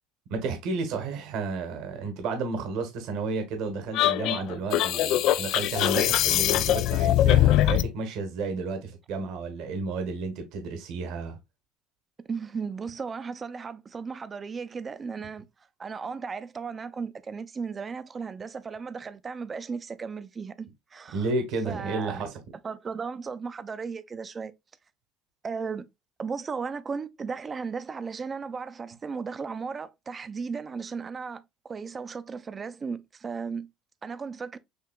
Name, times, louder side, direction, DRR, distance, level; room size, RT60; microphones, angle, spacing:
voice 1, 0.3-11.4 21.1-22.4, right 3 dB, 70° right, 1.2 m, -32 dB
sound 1, 3.9-7.9, left 13 dB, 65° left, 0.3 m, -22 dB
voice 2, 12.3-15.4 15.8-21.3 21.6-22.2 22.6-24.5 25.4-25.9 26.2-33.7 34.0-34.6, right 5 dB, 30° right, 0.5 m, -35 dB
6.6 x 2.8 x 2.3 m
supercardioid pair, 105°, 0 cm